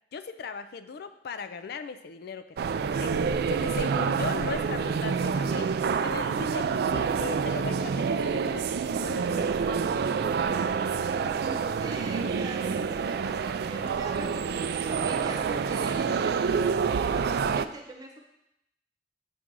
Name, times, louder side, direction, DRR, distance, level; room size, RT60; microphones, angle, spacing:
voice 1, 0.1-2.6 3.0-3.2 3.5-9.8, left 5 dB, 60° left, 10 dB, 0.4 m, -38 dB
sound 1, 2.6-17.6, right 6 dB, 60° right, 0.3 m, -27 dB
voice 2, 11.0-18.2, right 2 dB, 20° right, 0 dB, 1.2 m, -42 dB
8.4 x 3.8 x 6.0 m, 0.84 s
head